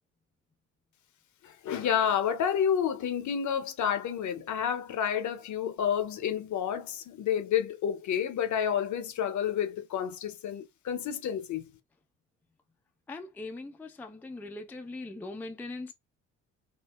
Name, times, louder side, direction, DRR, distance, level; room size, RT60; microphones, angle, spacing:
voice 1, 1.4-11.6, left 8 dB, 50° left, 0.7 m, -30 dB
voice 2, 13.1-15.9, left 2 dB, 5° left, 0.4 m, -40 dB
3.6 x 2.0 x 2.3 m
hypercardioid pair, 60°, 37 cm